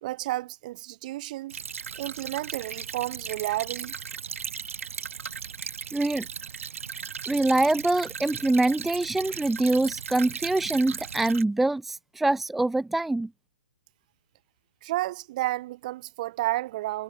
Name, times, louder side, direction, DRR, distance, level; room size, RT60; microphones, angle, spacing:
voice 1, 0.0-1.6 2.0-4.0 14.8-17.0, right 17 dB, 35° right, 3.5 m, -31 dB
Stream / Trickle dribble, 1.5-11.4, right 7 dB, 80° right, 8.0 m, -37 dB
voice 2, 5.9-6.3 7.3-13.3, right 2 dB, ahead, 0.5 m, -24 dB
hypercardioid pair, 165°, 7 cm